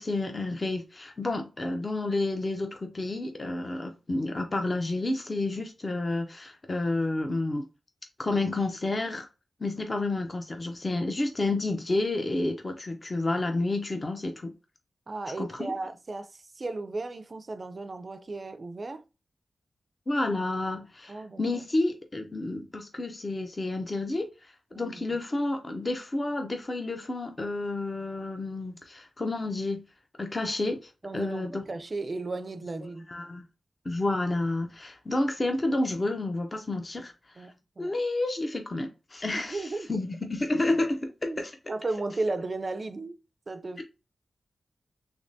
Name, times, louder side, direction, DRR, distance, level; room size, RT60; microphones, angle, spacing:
voice 1, 0.0-7.6 8.2-9.3 9.6-14.5 15.4-15.7 20.1-29.8 30.2-31.6 33.1-33.4 33.8-37.5 37.8-41.5, left 2 dB, 35° left, 0.5 m, -30 dB
voice 2, 15.1-19.0 21.1-21.4 24.7-25.0 31.0-33.1 37.4-37.9 39.3-39.9 41.3-43.2 43.5-43.8, right 3 dB, 40° right, 0.4 m, -35 dB
3.4 x 3.2 x 2.6 m
wide cardioid pair, 90°, 0 cm